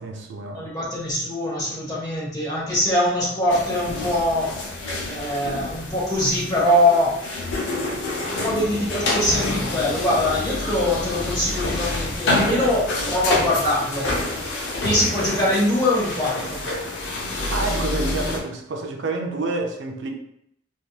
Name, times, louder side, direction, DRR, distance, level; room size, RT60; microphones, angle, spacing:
voice 1, 0.0-0.7 17.5-20.1, right 3 dB, 75° right, 0.5 m, -28 dB
voice 2, 0.5-4.5 5.1-7.1 7.6-7.9 8.4-14.1 14.8-16.6, left 1 dB, 20° left, 1.3 m, -23 dB
sound 1, 3.5-18.4, left 2 dB, 80° left, 0.7 m, -27 dB
3.4 x 2.7 x 2.3 m
head